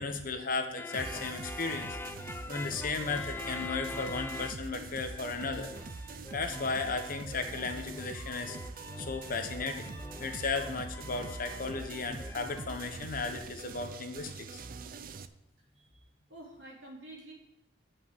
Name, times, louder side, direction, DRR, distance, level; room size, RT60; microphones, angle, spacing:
voice 1, 0.0-2.0 2.4-5.7 6.3-8.6 9.0-9.9 10.2-14.6, left 4 dB, 50° left, 6 dB, 1.0 m, -35 dB
sound 1, 0.8-4.8 5.1-12.7, left 2 dB, 10° left, 0.3 m, -44 dB
sound 2, 0.9-15.3, right 3 dB, 50° right, 0.5 m, -44 dB
voice 2, 16.3-17.3, right 1 dB, 80° right, -3 dB, 3.2 m, -49 dB
8.3 x 5.6 x 7.2 m, 0.86 s
head